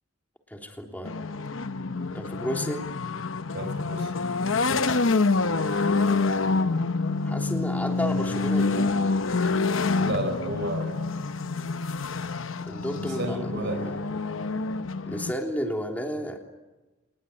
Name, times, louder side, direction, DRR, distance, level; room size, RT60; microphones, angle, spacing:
voice 1, 0.5-1.1 2.1-2.8 7.2-8.9 12.7-14.0 15.1-16.4, equal, 10° left, 2 dB, 3.4 m, -32 dB
sound 1, 1.0-15.3, left 3 dB, 70° left, 0.9 m, -27 dB
voice 2, 3.5-4.1 9.9-11.1 13.0-13.8, right 1 dB, 55° right, 5 dB, 4.9 m, -32 dB
28.5 x 20.0 x 9.7 m, 1.1 s
head